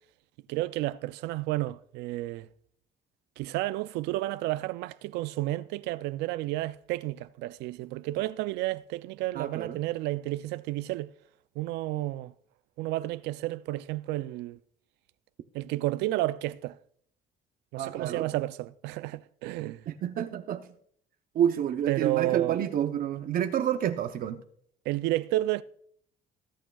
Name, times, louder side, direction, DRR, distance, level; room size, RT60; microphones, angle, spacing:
voice 1, 0.5-2.5 3.4-11.1 11.6-12.3 12.8-14.6 15.5-16.8 17.7-19.8 21.9-22.6 24.9-25.6, right 17 dB, 90° right, 0.4 m, -31 dB
voice 2, 9.3-9.8 17.8-18.3 19.9-20.7 21.3-24.4, right 9 dB, 55° right, 0.7 m, -29 dB
19.0 x 8.7 x 2.3 m
cardioid pair, 110°, 17 cm